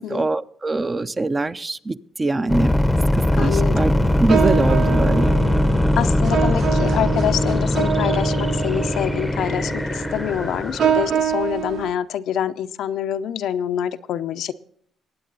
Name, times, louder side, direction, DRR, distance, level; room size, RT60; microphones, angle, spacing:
voice 1, 0.1-2.7 3.3-3.9 4.2-5.3, right 2 dB, 25° right, 12 dB, 0.7 m, -23 dB
sound 1, 2.5-11.1, left 1 dB, 10° left, 0.8 m, -20 dB
voice 2, 3.4-3.9 6.0-14.5, left 10 dB, 80° left, 10 dB, 0.6 m, -26 dB
sound 2, 3.7-11.9, right 9 dB, 65° right, 0.9 m, -26 dB
22.0 x 8.7 x 4.0 m, 0.64 s
cardioid pair, 90°, 0 cm